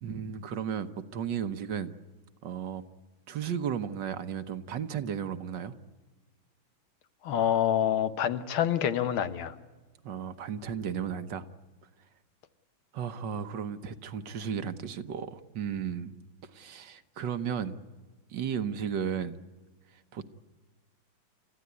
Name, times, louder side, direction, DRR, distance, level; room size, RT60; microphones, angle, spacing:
voice 1, 0.0-1.9 2.4-2.8 3.3-5.7 10.0-11.5 12.9-16.1 16.5-17.8 18.3-19.4 20.1-20.3, right 8 dB, 65° right, 11 dB, 1.5 m, -34 dB
voice 2, 7.2-9.5, left 10 dB, 80° left, 11 dB, 1.9 m, -27 dB
29.5 x 14.5 x 9.7 m, 1.3 s
omnidirectional pair, 2.3 m